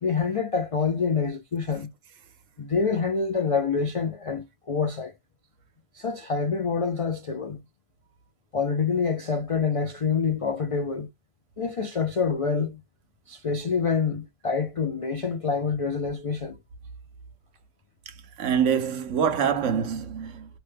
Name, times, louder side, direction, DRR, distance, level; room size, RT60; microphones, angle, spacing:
voice 1, 0.0-1.9 2.6-5.1 5.9-7.6 8.5-11.1 11.6-12.8 13.3-16.6, left 5 dB, 65° left, 0.3 m, -26 dB
voice 2, 18.4-20.6, right 7 dB, 80° right, 1.0 m, -25 dB
3.1 x 2.1 x 3.3 m
omnidirectional pair, 1.3 m